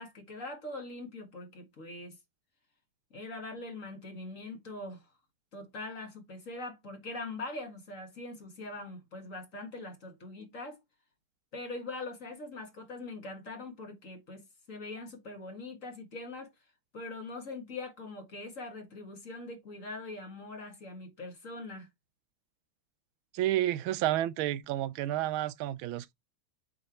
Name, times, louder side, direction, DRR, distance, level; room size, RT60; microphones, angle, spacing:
voice 1, 0.0-2.2 3.1-5.1 5.5-10.8 11.5-16.5 16.9-21.9, left 2 dB, 40° left, 2.2 m, -42 dB
voice 2, 23.3-26.1, right 13 dB, 85° right, 1.4 m, -30 dB
7.8 x 4.9 x 3.0 m
omnidirectional pair, 2.2 m